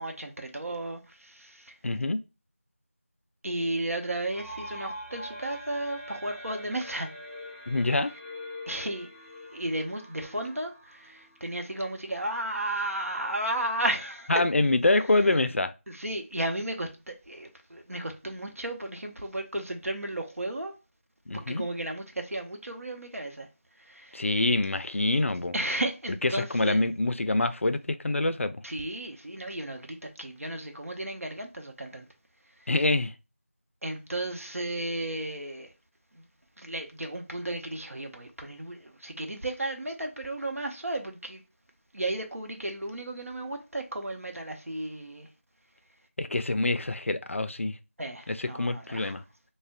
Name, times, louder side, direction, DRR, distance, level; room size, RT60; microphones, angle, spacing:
voice 1, 0.0-1.7 3.4-7.1 8.7-9.1 9.4-14.3 15.4-15.5 15.9-20.7 21.3-23.5 23.8-24.4 25.5-26.8 28.6-32.1 32.6-32.7 33.8-35.7 36.1-36.3 36.6-41.4 41.9-45.3 48.0-49.2, right 1 dB, 85° right, 0.8 m, -34 dB
voice 2, 1.8-2.2 7.7-8.1 14.3-15.7 21.3-21.6 24.1-25.5 26.2-28.6 32.7-33.1 46.2-47.8 48.3-49.2, left 2 dB, 65° left, 0.3 m, -26 dB
sound 1, 4.3-11.9, left 1 dB, 50° right, 1.4 m, -44 dB
2.4 x 2.1 x 3.5 m
figure-of-eight pair, 175°, 7 cm